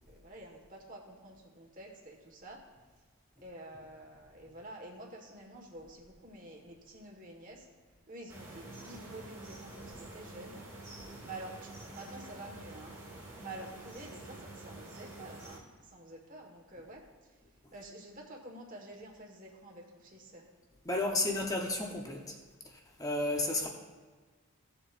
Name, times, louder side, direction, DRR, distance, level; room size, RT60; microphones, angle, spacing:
voice 1, 0.1-2.6 3.4-7.7 8.1-10.6 11.2-12.9 13.4-17.0 17.7-20.4, right 1 dB, 35° right, -1 dB, 1.7 m, -49 dB
sound 1, 8.3-15.6, right 2 dB, 15° right, 2.0 m, -48 dB
voice 2, 20.8-22.4 22.6-23.7, left 2 dB, 15° left, 1 dB, 1.0 m, -33 dB
17.0 x 7.0 x 2.6 m, 1.4 s
head